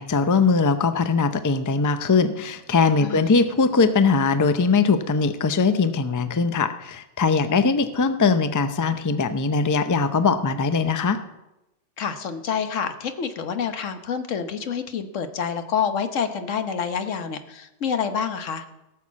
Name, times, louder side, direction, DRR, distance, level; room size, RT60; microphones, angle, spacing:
voice 1, 0.0-11.2, left 4 dB, 25° left, 10 dB, 0.4 m, -21 dB
voice 2, 3.0-3.3 12.0-18.6, left 7 dB, 85° left, 8 dB, 1.4 m, -27 dB
17.5 x 6.6 x 7.3 m, 0.96 s
omnidirectional pair, 1.3 m